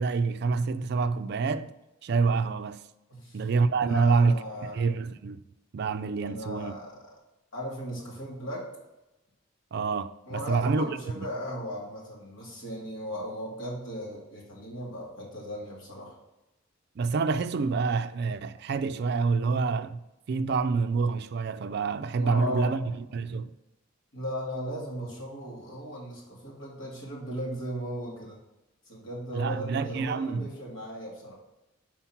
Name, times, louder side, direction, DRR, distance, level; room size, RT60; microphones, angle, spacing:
voice 1, 0.0-1.7 2.0-2.8 3.3-4.4 4.7-5.4 5.7-6.7 9.7-11.3 17.0-20.0 20.3-23.5 29.3-30.5, right 4 dB, 55° right, 0.4 m, -27 dB
voice 2, 3.8-4.7 6.2-7.0 7.5-8.7 10.3-16.1 22.2-22.7 24.1-28.4 28.9-31.3, equal, 70° left, 2.2 m, -37 dB
5.7 x 4.6 x 5.8 m
head